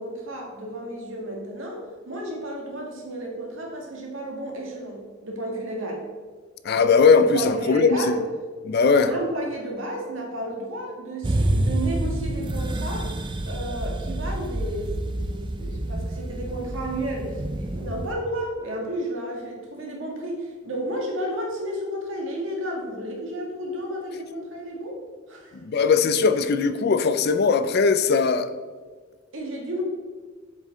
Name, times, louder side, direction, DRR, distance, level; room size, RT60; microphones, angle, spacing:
voice 1, 0.0-6.0 7.3-8.2 8.9-13.1 13.5-25.0 25.3-25.5 29.3-29.8, right 1 dB, 75° right, 1.8 m, -32 dB
voice 2, 6.6-8.1 8.7-9.1 25.6-28.5, left 5 dB, 50° left, 0.4 m, -19 dB
sound 1, 11.2-18.1, right 1 dB, 25° right, 0.4 m, -28 dB
7.4 x 5.2 x 3.8 m
head